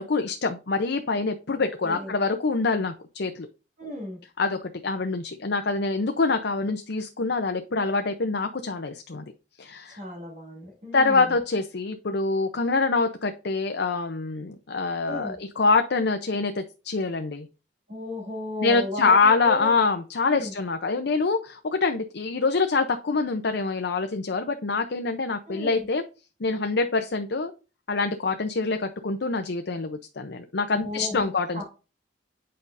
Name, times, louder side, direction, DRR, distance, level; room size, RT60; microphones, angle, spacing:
voice 1, 0.0-3.5 4.4-9.2 9.6-10.0 10.9-17.5 18.6-26.0 26.4-27.5 27.9-31.6, left 4 dB, 65° left, 7 dB, 0.7 m, -25 dB
voice 2, 1.5-2.1 3.8-4.2 10.0-11.2 15.1-15.4 17.9-19.7 20.3-20.5 25.5-25.9 30.7-31.6, left 2 dB, 40° right, -3 dB, 2.6 m, -35 dB
8.5 x 5.5 x 2.6 m, 0.31 s
head